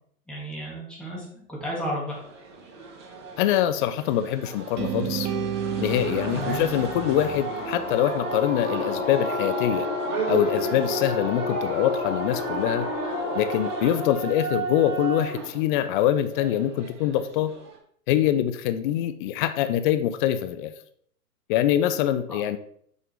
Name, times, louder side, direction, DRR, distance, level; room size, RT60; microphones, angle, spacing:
voice 1, 0.3-2.2 6.3-6.7 22.3-22.4, equal, ahead, -5 dB, 2.4 m, -33 dB
sound 1, 2.1-17.8, right 5 dB, 50° right, 2.5 m, -34 dB
voice 2, 3.4-5.3 5.8-9.9 10.3-12.9 13.3-17.5 18.1-20.7 21.5-22.6, left 11 dB, 35° left, 11 dB, 0.5 m, -24 dB
sound 2, 4.8-8.8, right 8 dB, 20° right, 0.7 m, -32 dB
sound 3, 5.9-14.2, left 4 dB, 50° left, 1.4 m, -32 dB
6.0 x 5.5 x 3.6 m, 0.64 s
hypercardioid pair, 110°, 45 cm